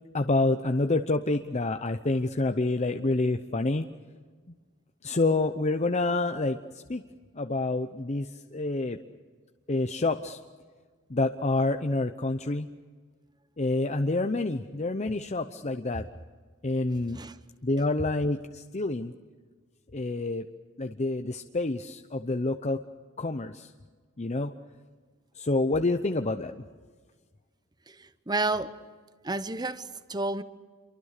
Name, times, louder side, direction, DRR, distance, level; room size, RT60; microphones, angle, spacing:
voice 1, 0.1-3.9 5.0-6.6 6.9-7.0 7.4-9.0 9.7-10.4 11.1-12.7 13.6-16.1 16.6-17.2 17.6-19.1 19.9-20.5 20.8-22.8 23.2-23.7 24.2-24.5 25.4-26.6, left 2 dB, 35° left, 0.8 m, -28 dB
voice 2, 27.9-28.8 29.2-30.4, right 2 dB, 20° right, 0.9 m, -31 dB
27.5 x 23.5 x 6.7 m
head